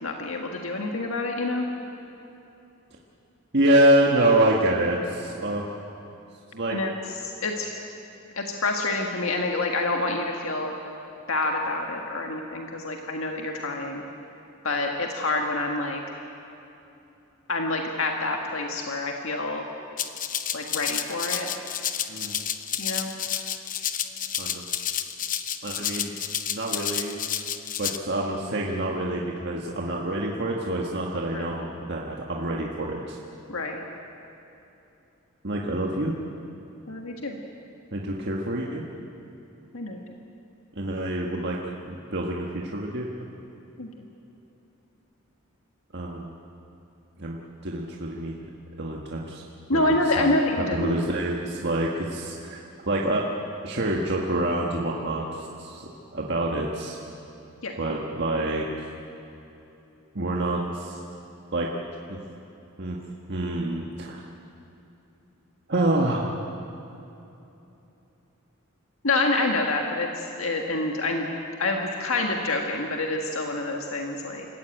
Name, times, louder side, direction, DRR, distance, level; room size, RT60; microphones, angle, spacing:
voice 1, 0.0-1.7 6.7-6.9 7.2-7.7 8.3-10.7 11.3-14.0 14.6-16.0 17.5-19.6 20.5-21.5 22.8-23.2 31.3-31.5 33.5-33.8 36.9-37.4 39.7-40.0 43.8-43.9 49.7-51.0 57.6-57.7 69.0-71.3 71.6-74.4, left 2 dB, 75° left, 2 dB, 1.7 m, -27 dB
voice 2, 3.5-5.7 6.5-6.8 22.1-22.4 24.4-24.6 25.6-27.2 27.8-33.2 35.4-36.1 37.9-38.8 40.7-41.6 41.8-43.1 45.9-46.3 47.2-47.4 47.6-48.4 48.8-49.4 49.7-50.3 50.7-52.6 52.9-53.2 53.6-57.0 57.8-58.9 60.1-61.0 61.5-61.7 62.1-62.2 62.8-63.0 63.3-64.2 65.7-66.3, right 1 dB, 55° right, -1 dB, 1.6 m, -26 dB
Rattle (instrument), 20.0-28.0, left 9 dB, 40° left, 0.9 m, -30 dB
26.0 x 15.0 x 9.0 m, 2.9 s
head